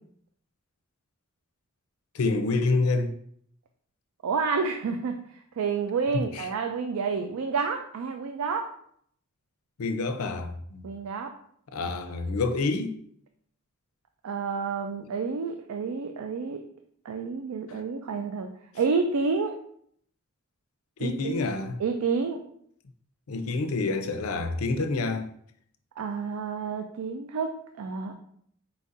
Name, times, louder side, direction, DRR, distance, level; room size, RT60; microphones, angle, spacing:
voice 1, 2.1-3.1 6.1-6.5 9.8-10.8 11.7-12.9 17.7-17.8 21.0-21.8 23.3-25.3, left 3 dB, 85° left, 0.5 m, -28 dB
voice 2, 4.2-5.2 5.6-8.7 10.8-11.3 14.2-16.6 17.0-18.5 18.7-19.6 21.0-21.3 21.8-22.4 26.0-28.1, right 5 dB, 90° right, 0.4 m, -29 dB
4.4 x 3.9 x 2.5 m
head